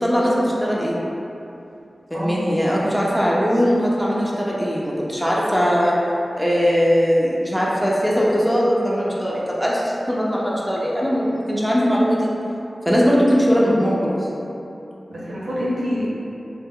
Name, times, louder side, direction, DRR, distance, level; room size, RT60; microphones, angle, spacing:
voice 1, 0.0-1.0 2.1-5.9 6.3-12.3 12.9-14.2, equal, ahead, -6 dB, 0.5 m, -20 dB
voice 2, 2.8-3.1 15.1-16.1, equal, 80° right, -7 dB, 0.6 m, -27 dB
2.1 x 2.1 x 3.6 m, 2.8 s
cardioid pair, 40°, 0 cm